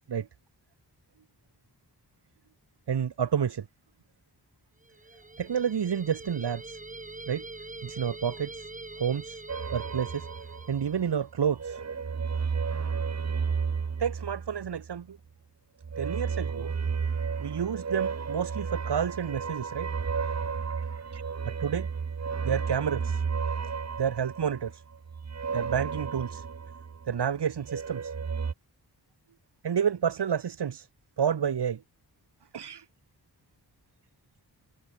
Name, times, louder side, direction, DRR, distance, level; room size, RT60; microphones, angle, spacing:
voice 1, 2.9-3.7 5.4-6.8 7.3-7.4 7.8-8.7 9.0-9.4 9.7-10.3 10.7-11.8 14.0-15.2 16.0-19.9 20.5-21.9 22.4-23.2 24.0-24.8 25.5-26.4 27.1-28.1 29.6-30.9 31.2-31.8 32.5-32.8, right 8 dB, 90° right, 2.7 m, -30 dB
sound 1, 4.8-11.2, right 2 dB, 20° right, 5.8 m, -44 dB
sound 2, 9.5-11.1 11.4-15.0 15.8-27.2 27.5-28.5, right 5 dB, 40° right, 1.6 m, -33 dB
wide cardioid pair, 175°, 40 cm